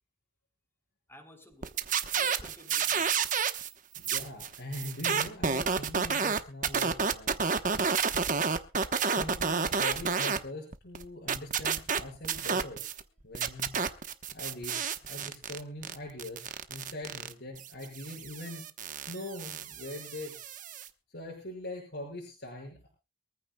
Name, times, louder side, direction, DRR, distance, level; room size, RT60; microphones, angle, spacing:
voice 1, 1.1-1.9 2.1-3.4, left 1 dB, 15° left, 6 dB, 3.0 m, -53 dB
sound 1, 1.6-3.7 3.9-10.4 10.7-13.0 13.3-20.9, right 6 dB, 45° right, 1.0 m, -30 dB
voice 2, 4.0-7.7 9.1-12.9 13.2-13.8 14.3-18.7 19.1-20.4 21.1-22.9, left 1 dB, 65° left, -3 dB, 5.6 m, -42 dB
23.5 x 14.5 x 2.3 m, 0.30 s
head